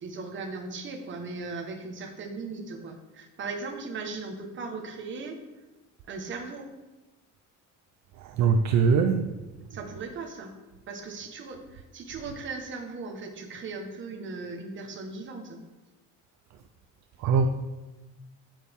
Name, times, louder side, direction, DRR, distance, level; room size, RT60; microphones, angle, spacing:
voice 1, 0.0-5.4 6.1-6.7 9.7-10.5 10.9-15.6, right 3 dB, 35° right, 2 dB, 1.3 m, -38 dB
voice 2, 8.4-9.2 17.2-17.5, right 5 dB, 55° right, 6 dB, 0.6 m, -21 dB
9.3 x 8.5 x 3.6 m, 1.1 s
cardioid pair, 170°, 33 cm